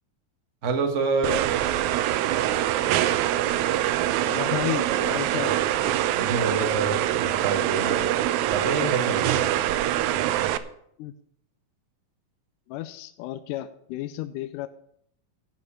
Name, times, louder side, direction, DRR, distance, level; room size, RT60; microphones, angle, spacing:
voice 1, 0.6-1.4 6.1-8.1 8.5-9.4, right 4 dB, 45° right, 4 dB, 1.0 m, -27 dB
sound 1, 1.2-10.6, right 13 dB, 85° right, 1.7 m, -24 dB
voice 2, 4.3-5.6 11.0-11.1 12.7-14.7, left 14 dB, 80° left, 11 dB, 2.0 m, -32 dB
12.0 x 5.6 x 8.5 m, 0.69 s
omnidirectional pair, 4.0 m